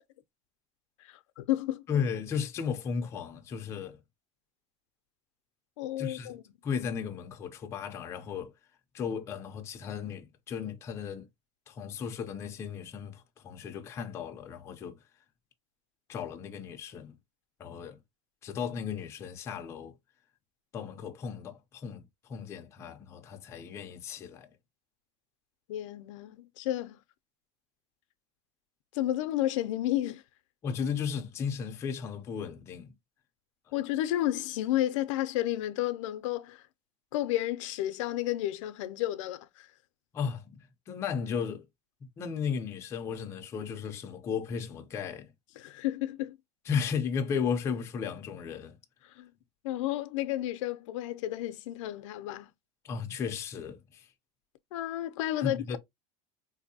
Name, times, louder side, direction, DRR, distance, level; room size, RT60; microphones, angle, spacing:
voice 1, 1.0-1.9 5.8-6.4 25.7-27.0 28.9-30.2 33.7-36.6 37.1-39.7 45.6-46.4 49.2-49.3 49.6-52.5 54.7-55.8, left 14 dB, 85° left, 0.4 m, -32 dB
voice 2, 1.9-4.0 6.0-6.4 6.6-8.5 8.9-11.3 11.7-15.0 16.1-17.2 17.6-18.0 18.4-19.9 20.7-24.5 30.6-32.9 40.1-41.6 42.0-45.3 46.7-48.8 52.8-54.1 55.4-55.8, left 6 dB, 15° left, 0.4 m, -35 dB
3.9 x 2.6 x 2.6 m
supercardioid pair, 175°, 16 cm